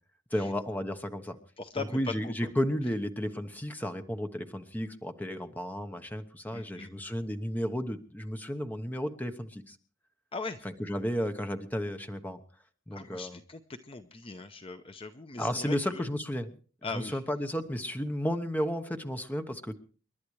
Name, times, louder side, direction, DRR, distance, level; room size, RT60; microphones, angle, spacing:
voice 1, 0.3-1.4 1.8-9.8 10.6-12.4 12.9-13.4 15.4-16.6 16.9-19.7, equal, 10° left, 8 dB, 1.0 m, -33 dB
voice 2, 1.6-2.5 6.5-6.9 10.3-10.7 12.9-16.1 16.8-17.2, left 3 dB, 30° left, 8 dB, 0.7 m, -40 dB
29.5 x 11.5 x 3.2 m, 0.41 s
head